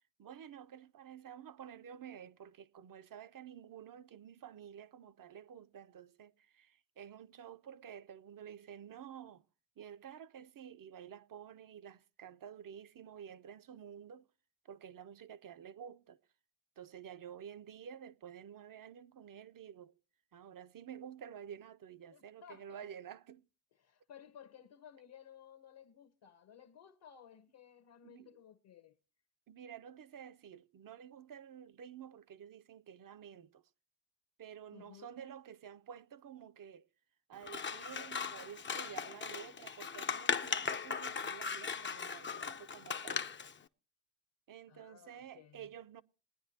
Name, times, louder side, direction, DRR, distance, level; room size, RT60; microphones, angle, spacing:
voice 1, 0.2-9.4 9.8-14.3 14.6-16.2 16.8-19.9 20.3-23.5 28.0-28.4 29.5-33.6 34.4-36.9 37.3-43.3 44.5-46.0, right 8 dB, 45° right, 0.6 m, -51 dB
voice 2, 22.1-22.8 23.8-29.0 34.7-35.1 44.7-45.7, left 8 dB, 60° left, 1.0 m, -57 dB
Scissors, 37.4-43.5, left 5 dB, 25° left, 0.5 m, -38 dB
20.5 x 9.6 x 2.8 m
cardioid pair, 70°, 48 cm